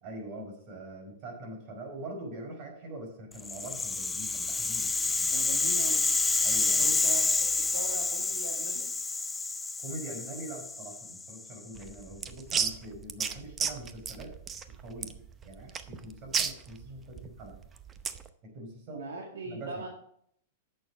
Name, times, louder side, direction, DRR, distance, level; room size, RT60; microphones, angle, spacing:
voice 1, 0.0-5.3 6.4-6.9 9.8-14.3 14.8-15.1 15.4-17.6 18.4-19.0 19.4-19.8, right 1 dB, 45° right, 2 dB, 4.9 m, -43 dB
Rattle (instrument), 3.4-11.6, left 3 dB, 10° left, 0.3 m, -29 dB
voice 2, 5.3-6.0 6.8-8.9 18.9-19.9, right 3 dB, 85° right, 0 dB, 1.9 m, -40 dB
sound 1, 11.7-18.3, right 6 dB, 20° right, 0.7 m, -34 dB
10.5 x 6.8 x 5.0 m, 0.66 s
hypercardioid pair, 125°, 0 cm